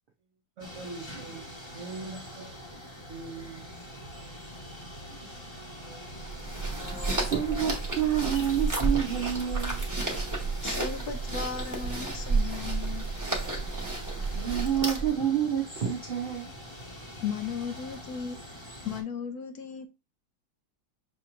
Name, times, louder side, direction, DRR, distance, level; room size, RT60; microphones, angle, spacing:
sound 1, 0.6-19.0, equal, 20° left, 1.0 m, -44 dB
voice 1, 0.6-2.6 3.1-3.7, right 3 dB, 55° right, 0.9 m, -42 dB
sound 2, 6.2-15.2, right 3 dB, 10° right, 1.0 m, -31 dB
voice 2, 7.2-9.9 14.3-16.5, right 9 dB, 80° right, 0.4 m, -28 dB
voice 3, 10.6-13.1 17.2-18.4 18.8-19.9, left 6 dB, 70° left, 1.1 m, -36 dB
6.6 x 2.9 x 2.5 m
omnidirectional pair, 1.9 m